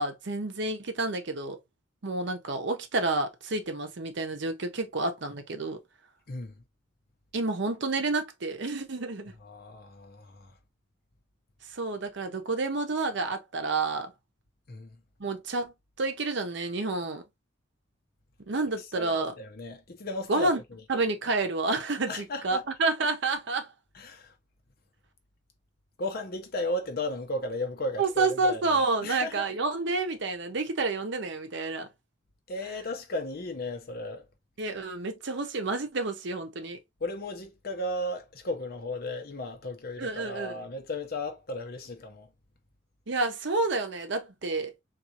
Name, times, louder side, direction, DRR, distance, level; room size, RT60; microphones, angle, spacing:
voice 1, 0.0-1.6 2.0-5.8 7.3-9.3 11.7-14.1 15.2-17.2 18.5-19.3 20.3-20.6 20.9-23.7 28.0-31.9 34.6-36.8 40.0-40.6 43.1-44.7, right 3 dB, 65° right, 0.8 m, -29 dB
voice 2, 6.3-6.6 9.4-10.5 14.7-15.0 18.9-20.8 22.1-22.6 23.9-24.3 26.0-29.4 32.5-34.2 37.0-42.3, left 1 dB, 50° left, 0.7 m, -35 dB
3.7 x 2.4 x 2.8 m
head